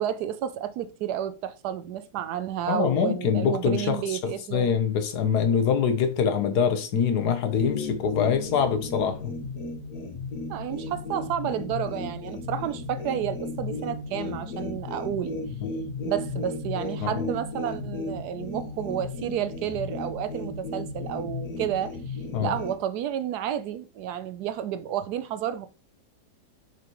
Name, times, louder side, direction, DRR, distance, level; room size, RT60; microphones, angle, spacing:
voice 1, 0.0-4.7 10.5-15.4 16.0-22.0 22.4-25.7, right 10 dB, 85° right, 1.2 m, -31 dB
voice 2, 2.7-9.3 15.6-15.7 17.0-17.2 22.3-22.5, left 7 dB, 90° left, 1.5 m, -24 dB
sound 1, 7.6-22.7, left 3 dB, 70° left, 1.7 m, -35 dB
6.9 x 4.8 x 3.0 m
omnidirectional pair, 1.7 m